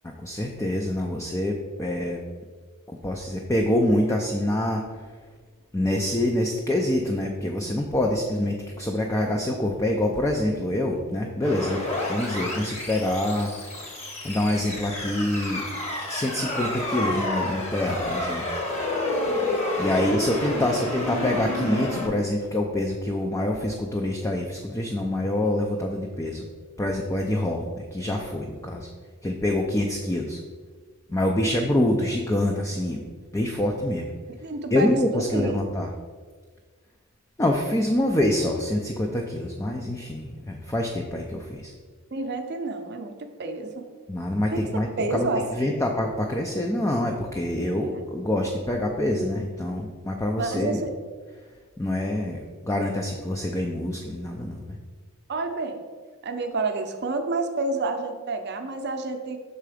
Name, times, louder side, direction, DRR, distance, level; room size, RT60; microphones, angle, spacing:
voice 1, 0.0-2.2 2.9-5.2 5.7-11.8 12.1-13.8 14.2-15.6 16.1-18.4 19.8-26.5 26.8-28.9 29.2-30.4 31.1-33.0 33.3-34.1 34.7-35.9 37.4-41.7 44.1-50.8 51.4-51.5 51.8-54.8, left 1 dB, 15° left, 1 dB, 0.4 m, -26 dB
sound 1, 11.4-22.1, left 2 dB, 30° left, 1.2 m, -30 dB
voice 2, 19.8-20.1 20.4-20.8 34.4-35.6 42.1-43.9 44.5-45.8 47.6-48.0 50.4-50.9 55.3-55.8 56.2-59.4, right 3 dB, 50° right, 6 dB, 0.7 m, -30 dB
6.8 x 3.7 x 4.9 m, 1.5 s
head